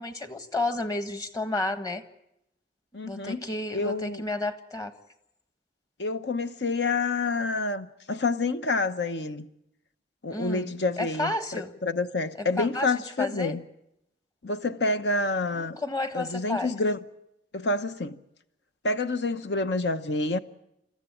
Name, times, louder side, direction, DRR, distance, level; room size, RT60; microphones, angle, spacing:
voice 1, 0.0-2.0 3.0-4.9 10.3-11.7 12.4-13.6 15.5-16.7, left 2 dB, 20° left, 1.4 m, -32 dB
voice 2, 2.9-3.4 3.7-4.2 6.0-9.5 10.2-13.6 14.4-15.8 16.1-17.0 17.5-18.2 18.8-20.4, left 3 dB, 70° left, 1.0 m, -28 dB
28.5 x 14.0 x 10.0 m
head